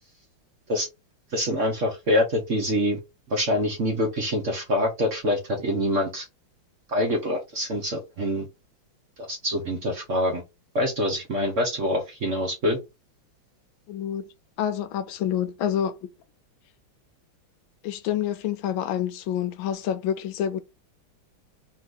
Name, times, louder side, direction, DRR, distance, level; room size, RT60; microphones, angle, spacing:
voice 1, 1.3-3.0 3.3-6.2 6.9-8.5 9.3-10.4 10.7-12.8, left 1 dB, 45° right, 1.2 m, -25 dB
voice 2, 13.9-14.3 14.6-16.0 17.8-20.6, left 10 dB, 80° left, 1.3 m, -27 dB
3.5 x 3.2 x 3.9 m
omnidirectional pair, 2.3 m